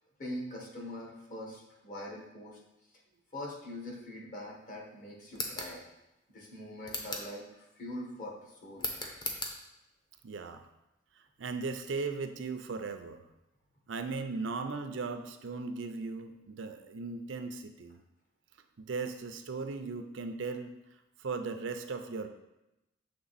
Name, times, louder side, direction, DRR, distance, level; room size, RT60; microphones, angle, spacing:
voice 1, 0.2-2.6 3.3-5.8 6.3-8.9, left 1 dB, 45° left, -2 dB, 1.3 m, -43 dB
sound 1, 5.3-5.7 6.8-7.3 8.8-9.6, left 2 dB, 25° left, 0.7 m, -37 dB
voice 2, 10.2-10.7 11.4-13.2 13.9-18.0 18.8-20.7 21.2-22.3, right 4 dB, 80° right, 7 dB, 0.5 m, -37 dB
6.9 x 3.3 x 4.1 m, 0.93 s
head